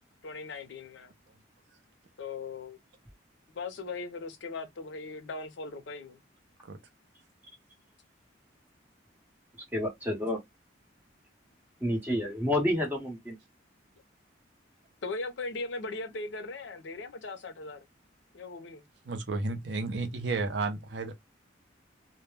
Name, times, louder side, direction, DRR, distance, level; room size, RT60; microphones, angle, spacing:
voice 1, 0.2-1.1 2.2-2.8 3.5-6.2 15.0-17.8 18.3-18.8, left 3 dB, 70° left, 0.5 m, -39 dB
voice 2, 9.7-10.4 11.8-13.4, left 1 dB, 10° right, 0.9 m, -29 dB
voice 3, 19.1-21.1, right 3 dB, 65° right, 0.5 m, -32 dB
2.1 x 2.1 x 3.1 m
head